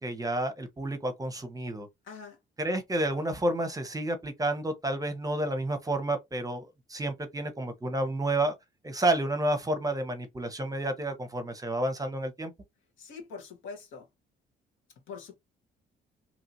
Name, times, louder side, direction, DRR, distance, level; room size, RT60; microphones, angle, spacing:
voice 1, 0.0-1.9 2.6-8.5 8.8-12.5, right 1 dB, 20° right, 0.8 m, -30 dB
voice 2, 2.0-2.4 13.0-14.1 15.1-15.4, left 5 dB, 80° left, 1.3 m, -43 dB
2.9 x 2.7 x 2.6 m
cardioid pair, 90°, 20 cm